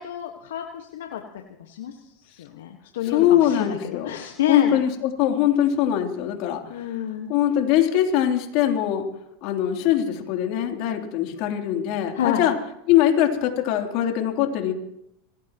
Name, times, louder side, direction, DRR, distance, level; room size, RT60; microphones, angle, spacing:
voice 1, 0.0-4.8 6.7-7.3 12.1-12.4, left 10 dB, 80° left, 3 dB, 1.5 m, -29 dB
voice 2, 3.0-4.1 4.5-6.9 7.3-9.0 9.4-12.5 12.9-14.7, left 11 dB, 60° left, 3 dB, 3.2 m, -22 dB
26.0 x 18.0 x 3.0 m, 0.79 s
hypercardioid pair, 95°, 0 cm